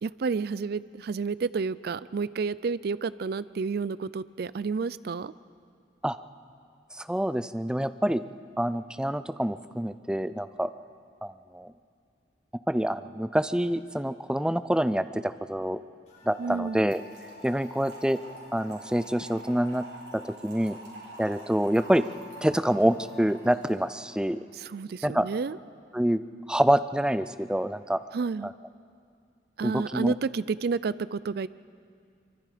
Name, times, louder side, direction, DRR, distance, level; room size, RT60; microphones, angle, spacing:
voice 1, 0.0-5.3 16.4-16.8 24.5-25.6 28.1-28.5 29.6-31.5, right 4 dB, 60° right, 17 dB, 0.4 m, -30 dB
voice 2, 7.0-8.2 8.6-10.7 11.2-11.7 12.7-15.8 16.3-17.0 17.4-18.2 18.5-19.9 20.2-20.8 21.2-22.1 22.4-24.4 25.0-25.2 25.9-26.2 26.5-28.0 28.4-28.5 29.6-30.1, right 1 dB, 5° right, 13 dB, 0.4 m, -26 dB
sound 1, 16.1-23.7, left 4 dB, 45° left, 7.8 m, -51 dB
Trickle dribble / Fill (with liquid), 16.9-24.0, right 2 dB, 85° right, 6.9 m, -48 dB
24.0 x 24.0 x 5.0 m, 2.3 s
head